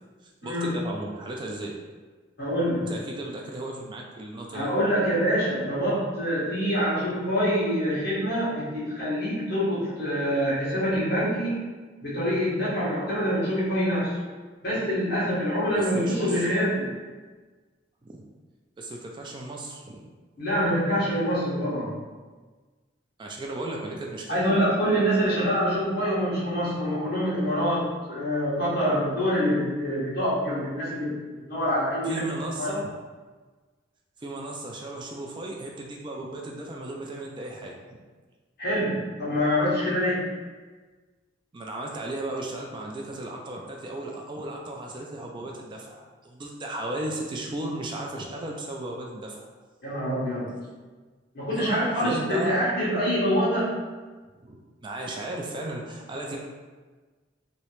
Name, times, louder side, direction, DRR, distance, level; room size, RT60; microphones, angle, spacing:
voice 1, 0.2-1.7 2.9-4.7 15.7-16.5 18.0-18.2 18.8-20.0 23.2-24.5 32.0-32.9 34.2-37.8 41.5-49.5 51.6-52.6 54.4-56.4, right 1 dB, 25° right, -1 dB, 0.3 m, -35 dB
voice 2, 2.4-2.9 4.5-11.6 12.0-14.2 14.6-16.9 20.4-21.9 24.3-31.1 31.5-32.2 32.6-32.8 38.6-40.3 49.8-50.6 51.3-53.7, equal, 55° left, -9 dB, 1.4 m, -25 dB
3.1 x 2.8 x 3.0 m, 1.4 s
head